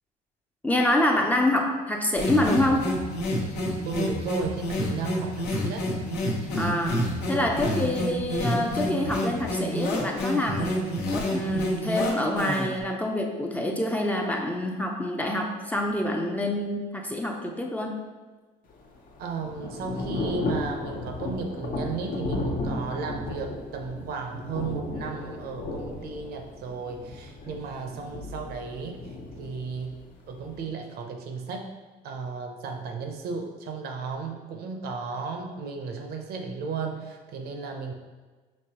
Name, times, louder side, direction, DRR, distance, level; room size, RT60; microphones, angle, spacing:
voice 1, 0.6-2.9 6.6-10.9 11.3-18.0, left 1 dB, 10° left, 1 dB, 0.4 m, -26 dB
sound 1, 2.2-12.8, equal, 80° left, 0.9 m, -29 dB
voice 2, 3.8-5.9 19.2-31.7 32.0-37.9, right 4 dB, 70° right, 4 dB, 0.6 m, -34 dB
Thunder / Rain, 18.7-30.6, left 2 dB, 55° left, 0.7 m, -34 dB
5.3 x 3.0 x 2.8 m, 1.3 s
cardioid pair, 110°, 17 cm